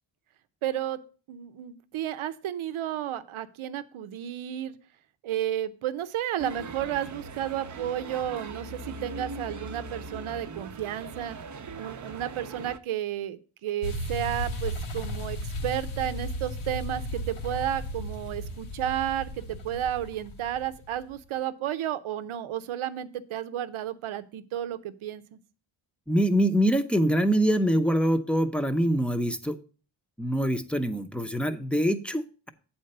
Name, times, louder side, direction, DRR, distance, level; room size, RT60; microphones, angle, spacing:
voice 1, 0.6-1.0 1.3-4.7 5.2-11.4 11.8-25.4, right 11 dB, 90° right, 12 dB, 0.8 m, -32 dB
sound 1, 6.4-12.8, right 3 dB, 40° right, 0.7 m, -40 dB
sound 2, 13.8-21.0, equal, 80° left, 1.4 m, -35 dB
voice 2, 26.1-29.6 30.2-32.5, equal, ahead, 9 dB, 0.7 m, -24 dB
7.9 x 4.4 x 6.6 m, 0.38 s
cardioid pair, 80°, 48 cm